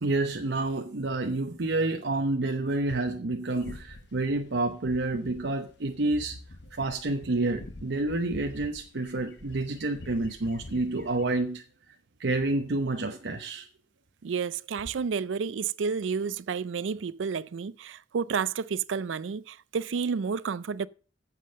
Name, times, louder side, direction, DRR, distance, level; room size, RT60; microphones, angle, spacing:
voice 1, 0.0-6.4 6.8-11.6 12.2-13.7, right 2 dB, 70° right, 0.8 m, -29 dB
sound 1, 3.6-11.2, left 2 dB, 65° left, 1.2 m, -47 dB
voice 2, 14.2-20.9, right 6 dB, 90° right, 0.4 m, -31 dB
9.0 x 7.5 x 6.4 m
head